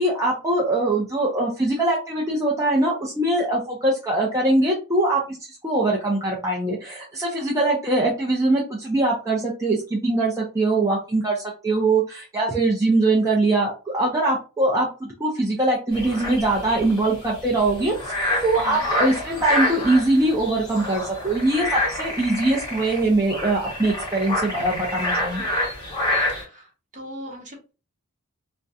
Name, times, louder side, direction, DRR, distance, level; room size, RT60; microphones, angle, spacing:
voice 1, 0.0-25.4, right 2 dB, 15° right, -4 dB, 0.5 m, -22 dB
sound 1, 15.9-26.4, left 1 dB, 20° left, 1.2 m, -28 dB
voice 2, 26.3-26.7 26.9-27.7, equal, 35° right, 0 dB, 0.9 m, -39 dB
2.4 x 2.2 x 2.6 m, 0.31 s
head